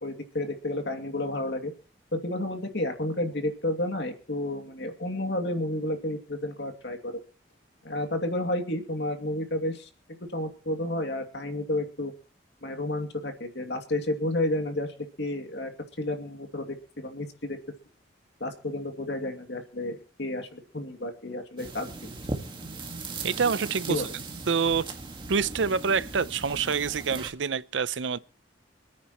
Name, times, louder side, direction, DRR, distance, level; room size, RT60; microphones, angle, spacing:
voice 1, 0.0-1.7 2.1-7.2 7.8-9.9 10.3-12.1 12.6-15.7 16.0-16.7 17.0-17.6 18.4-22.1 23.9-24.1, left 1 dB, 65° left, 2.6 m, -31 dB
sound 1, 21.6-27.3, right 3 dB, 25° right, 1.8 m, -38 dB
voice 2, 23.2-24.0 24.5-24.8 25.3-28.2, right 5 dB, 90° right, 0.6 m, -26 dB
27.0 x 9.4 x 3.1 m
head